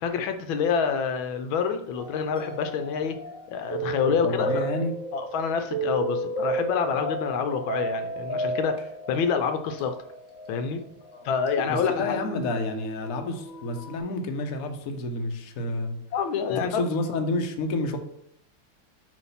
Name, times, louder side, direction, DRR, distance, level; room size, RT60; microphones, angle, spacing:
voice 1, 0.0-3.2 3.5-4.7 5.1-10.0 10.5-10.8 11.2-12.2 16.1-16.8, left 6 dB, 80° left, 7 dB, 1.4 m, -27 dB
sound 1, 1.9-14.0, right 1 dB, 15° left, 1.1 m, -33 dB
voice 2, 4.2-4.9 11.1-11.3 11.7-16.0 16.5-18.0, left 2 dB, 55° left, 4 dB, 1.0 m, -29 dB
7.5 x 3.2 x 5.6 m, 0.71 s
omnidirectional pair, 2.2 m